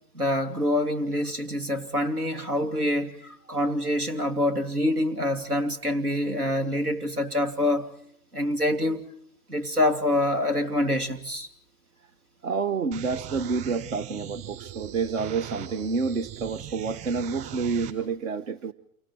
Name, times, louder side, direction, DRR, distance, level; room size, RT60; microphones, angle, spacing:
voice 1, 0.1-7.9 8.3-9.0 9.5-11.5, left 1 dB, 85° right, 2.8 m, -26 dB
voice 2, 12.4-18.7, right 5 dB, 60° right, 1.2 m, -29 dB
sound 1, 12.9-17.9, right 11 dB, 35° right, 5.3 m, -40 dB
29.0 x 24.5 x 4.4 m
figure-of-eight pair, 110°, 44 cm